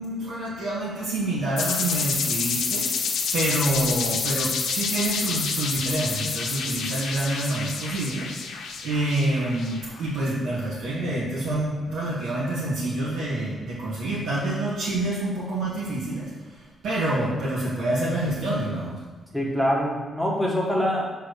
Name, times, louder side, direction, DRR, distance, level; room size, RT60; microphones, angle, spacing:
voice 1, 0.0-2.9 3.3-8.5 8.8-16.3 16.8-19.0, right 1 dB, 70° right, -10 dB, 2.1 m, -27 dB
sound 1, 1.6-10.1, left 5 dB, 85° left, 1.0 m, -28 dB
voice 2, 19.3-21.1, equal, ahead, -3 dB, 1.6 m, -24 dB
6.8 x 4.5 x 6.6 m, 1.3 s
cardioid pair, 135°, 0 cm